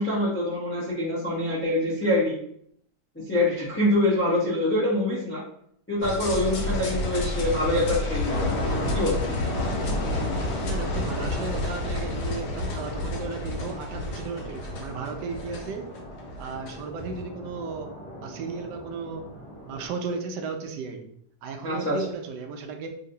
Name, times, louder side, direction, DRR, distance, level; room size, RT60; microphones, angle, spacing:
voice 1, 0.0-2.4 3.1-5.4 5.9-8.6 8.9-9.2 21.6-22.0, left 1 dB, 10° left, -8 dB, 0.6 m, -25 dB
sound 1, 6.0-17.2, left 2 dB, 75° left, 1.2 m, -30 dB
sound 2, 8.3-19.9, equal, 20° right, 1.4 m, -36 dB
voice 2, 10.6-15.9 16.4-17.9 18.2-19.3 19.7-21.1 21.4-22.9, right 5 dB, 90° right, 5 dB, 1.2 m, -35 dB
3.1 x 2.9 x 2.7 m, 0.66 s
omnidirectional pair, 1.8 m